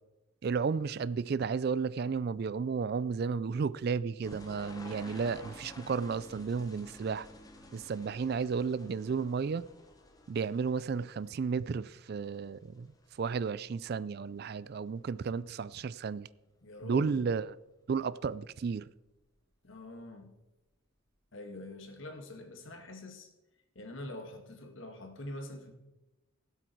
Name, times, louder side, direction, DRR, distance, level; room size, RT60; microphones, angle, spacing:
voice 1, 0.4-7.3 7.7-9.7 10.3-16.3 16.8-17.5 17.9-18.9, right 5 dB, 45° right, 0.3 m, -33 dB
sound 1, 4.2-15.6 15.8-16.4 16.8-17.6 17.9-18.0 18.7-18.8 19.1-19.2, left 1 dB, 15° left, 1.2 m, -53 dB
voice 2, 16.6-17.3 19.6-20.3 21.3-23.3 23.8-25.7, left 1 dB, 60° left, 2.0 m, -44 dB
18.0 x 8.1 x 4.5 m
head